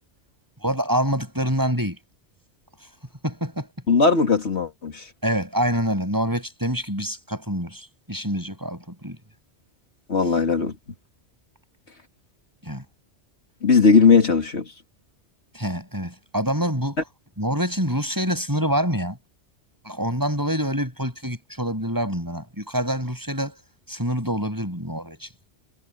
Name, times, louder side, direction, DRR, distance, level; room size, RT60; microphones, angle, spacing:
voice 1, 0.6-2.0 3.2-3.7 5.2-9.2 12.6-12.8 15.5-17.0 17.4-19.2 19.8-23.6 23.9-25.5, equal, 15° right, 8.1 m, -26 dB
voice 2, 3.9-5.0 10.1-10.7 13.6-14.7, left 5 dB, 75° left, 2.6 m, -18 dB
omnidirectional pair, 1.2 m